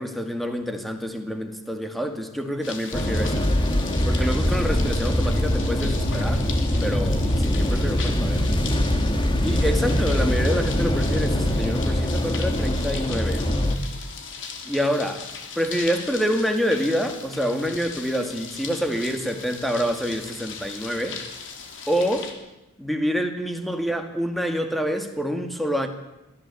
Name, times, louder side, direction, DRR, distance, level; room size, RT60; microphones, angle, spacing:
voice 1, 0.0-3.5 4.0-6.5 6.8-8.5 9.4-13.5 14.7-15.3 15.6-21.2 21.9-22.3 22.8-25.9, equal, ahead, 5 dB, 2.3 m, -27 dB
sound 1, 2.6-22.3, left 5 dB, 60° left, 3.3 m, -38 dB
sound 2, 2.9-13.8, left 1 dB, 20° left, 2.0 m, -23 dB
23.0 x 15.5 x 8.6 m, 0.95 s
head